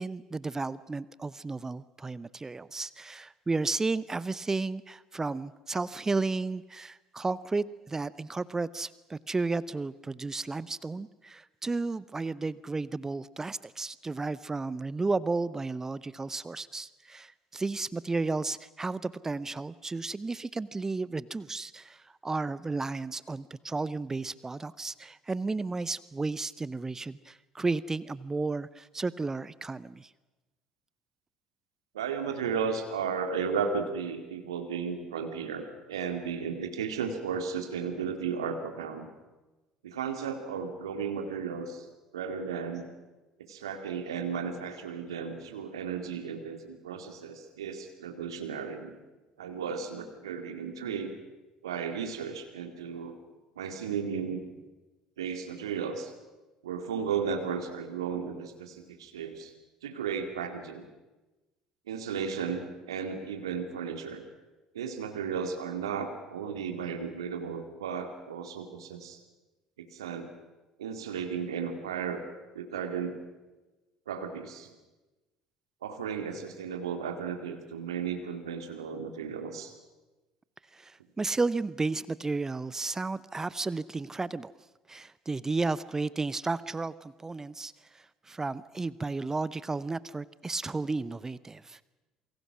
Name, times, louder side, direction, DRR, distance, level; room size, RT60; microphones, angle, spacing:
voice 1, 0.0-30.1 80.7-84.5 84.9-91.9, right 3 dB, 20° right, 18 dB, 0.7 m, -33 dB
voice 2, 31.9-39.1 39.8-41.9 42.1-42.8 43.5-49.0 49.4-51.1 51.6-53.1 53.6-54.4 55.2-56.1 56.6-59.5 59.8-60.8 61.9-64.2 64.7-69.2 69.9-70.3 70.8-72.2 72.5-73.1 74.1-74.7 75.8-79.7, right 6 dB, 75° right, 6 dB, 2.3 m, -34 dB
28.0 x 24.0 x 6.2 m, 1.1 s
figure-of-eight pair, 60°, 3 cm